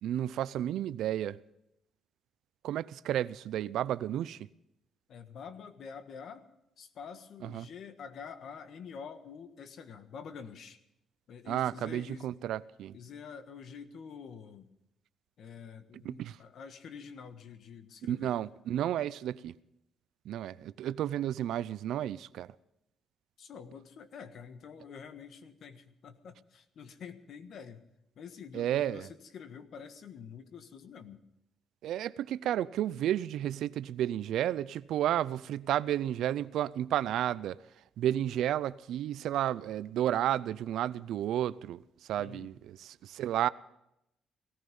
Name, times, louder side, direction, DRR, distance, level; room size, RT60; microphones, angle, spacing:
voice 1, 0.0-1.4 2.6-4.4 7.4-7.7 11.5-13.0 16.0-16.4 18.0-19.5 20.3-22.5 28.5-29.1 31.8-37.6 38.0-41.8 42.1-42.5 42.8-43.5, right 11 dB, 80° right, 0.5 m, -32 dB
voice 2, 5.1-6.5 6.8-10.8 11.3-12.3 12.9-14.7 15.4-18.4 23.4-27.8 28.1-31.2 42.2-42.5, left 6 dB, 65° left, 1.5 m, -47 dB
18.5 x 14.5 x 5.4 m
cardioid pair, 90°, 0 cm